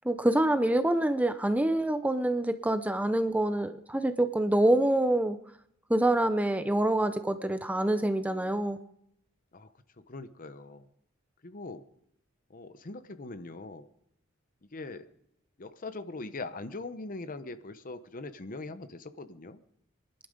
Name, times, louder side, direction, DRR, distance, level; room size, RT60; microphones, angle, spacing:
voice 1, 0.1-5.4 5.9-8.8, right 1 dB, 5° right, 10 dB, 0.6 m, -26 dB
voice 2, 10.1-10.9 11.4-11.8 12.5-13.9 14.7-15.1 15.6-19.6, left 3 dB, 45° left, 12 dB, 0.8 m, -41 dB
23.5 x 11.5 x 5.2 m, 0.74 s
head